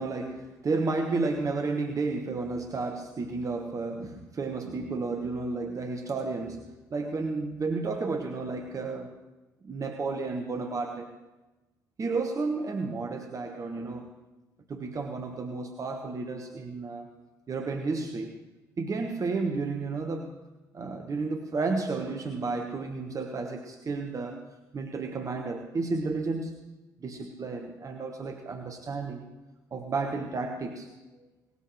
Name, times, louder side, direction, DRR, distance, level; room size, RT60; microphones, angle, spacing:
voice 1, 0.0-9.1 9.6-11.1 12.0-14.1 14.7-17.1 17.5-18.4 18.8-20.3 20.7-24.4 24.7-26.6 27.0-29.2 29.7-30.9 31.2-31.3, right 3 dB, 35° right, 4 dB, 1.2 m, -32 dB
18.5 x 13.5 x 3.2 m, 1.1 s
figure-of-eight pair, 45°, 10 cm